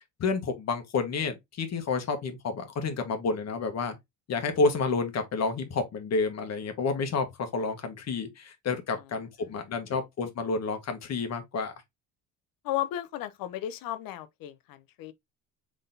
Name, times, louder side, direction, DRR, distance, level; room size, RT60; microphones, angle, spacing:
voice 1, 0.2-3.9 4.3-11.7, left 4 dB, 45° left, 1.2 m, -30 dB
voice 2, 12.6-15.1, left 13 dB, 70° left, 0.7 m, -34 dB
3.8 x 3.7 x 2.6 m
cardioid pair, 110°, 36 cm